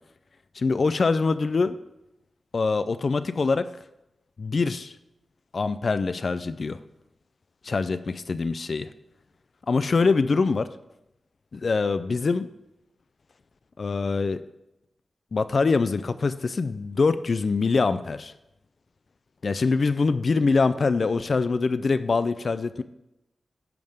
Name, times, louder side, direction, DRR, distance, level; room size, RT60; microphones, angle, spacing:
voice 1, 0.6-1.8 2.5-3.7 4.4-4.9 5.5-6.8 7.6-8.9 9.7-10.7 11.5-12.5 13.8-14.4 15.3-18.3 19.4-22.8, left 4 dB, 50° left, 12 dB, 0.3 m, -24 dB
10.5 x 3.6 x 6.5 m, 0.89 s
wide cardioid pair, 130°, 0 cm